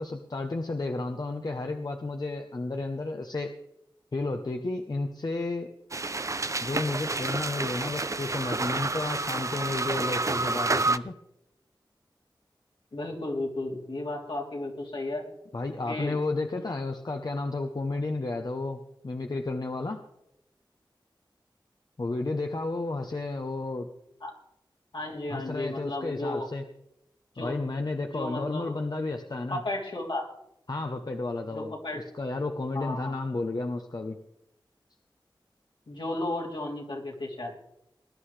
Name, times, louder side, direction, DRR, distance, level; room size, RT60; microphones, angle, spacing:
voice 1, 0.0-3.5 4.1-5.7 6.6-11.1 15.5-20.0 22.0-23.9 25.3-26.6 27.4-29.6 30.7-31.7 32.1-34.2, left 2 dB, 50° left, 4 dB, 0.9 m, -32 dB
sound 1, 5.9-11.0, right 3 dB, 40° right, 0.5 m, -29 dB
voice 2, 12.9-15.2 15.9-16.2 16.6-16.7 24.2-24.3 24.9-26.5 27.4-27.5 28.0-28.7 29.5-30.3 31.5-32.0 32.7-33.1 35.9-37.5, left 2 dB, 75° left, -3 dB, 3.4 m, -34 dB
20.0 x 11.0 x 3.3 m, 0.82 s
wide cardioid pair, 55°, 8 cm